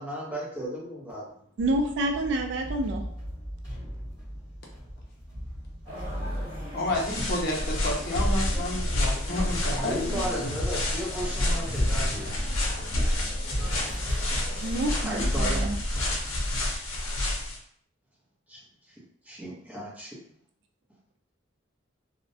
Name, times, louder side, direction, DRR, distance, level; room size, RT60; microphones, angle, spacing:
voice 1, 0.0-1.3 9.8-12.3 15.0-15.7 18.5-18.6 19.2-20.2, equal, 10° right, -7 dB, 0.7 m, -34 dB
sound 1, 1.6-16.7, equal, 20° left, 1.2 m, -37 dB
voice 2, 1.6-3.0 14.6-15.8, right 1 dB, 60° right, 3 dB, 0.3 m, -28 dB
sound 2, 5.8-15.3, equal, 25° right, 1.2 m, -43 dB
voice 3, 6.7-10.6, left 1 dB, 50° left, -1 dB, 0.5 m, -31 dB
sound 3, 6.9-17.6, left 1 dB, 90° left, 0.6 m, -29 dB
2.4 x 2.0 x 2.6 m, 0.62 s
head